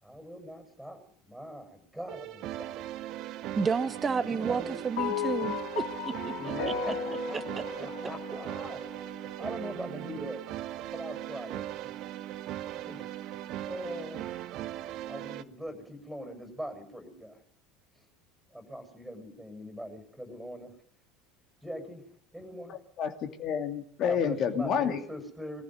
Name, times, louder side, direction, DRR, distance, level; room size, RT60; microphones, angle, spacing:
voice 1, 0.0-2.8 3.9-4.8 6.4-8.8 9.4-10.4 10.9-11.6 11.9-12.0 12.6-13.1 13.7-14.3 15.1-17.4 18.0-18.1 18.5-20.7 21.6-22.0 22.3-22.8 24.0-25.6, equal, ahead, 6 dB, 7.1 m, -41 dB
sound 1, 2.1-15.4, right 13 dB, 50° right, 1.0 m, -39 dB
voice 2, 3.5-5.8 6.2-6.7 7.3-7.4, right 5 dB, 25° right, 13 dB, 1.4 m, -31 dB
sound 2, 5.0-9.4, left 8 dB, 65° left, 2.8 m, -36 dB
voice 3, 23.0-25.0, left 7 dB, 45° left, 6 dB, 2.7 m, -29 dB
22.5 x 15.0 x 9.4 m, 0.65 s
figure-of-eight pair, 70°, 0 cm